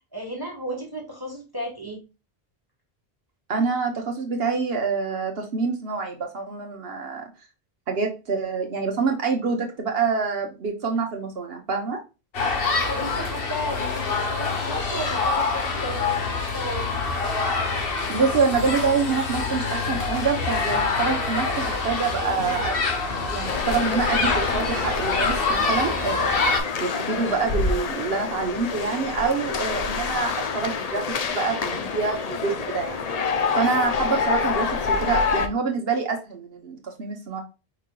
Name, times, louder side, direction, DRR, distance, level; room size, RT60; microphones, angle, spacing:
voice 1, 0.1-2.0 12.9-16.9, equal, 20° right, -1 dB, 1.3 m, -33 dB
voice 2, 3.5-7.2 7.9-12.0 18.1-22.8 23.3-26.5 26.8-31.0 31.3-33.0 33.5-37.4, right 5 dB, 70° right, 2 dB, 1.1 m, -26 dB
sound 1, 12.3-26.6, left 4 dB, 65° left, 1.1 m, -26 dB
sound 2, 23.4-35.5, left 5 dB, 50° left, 0.6 m, -27 dB
5.0 x 4.3 x 2.2 m, 0.29 s
omnidirectional pair, 1.1 m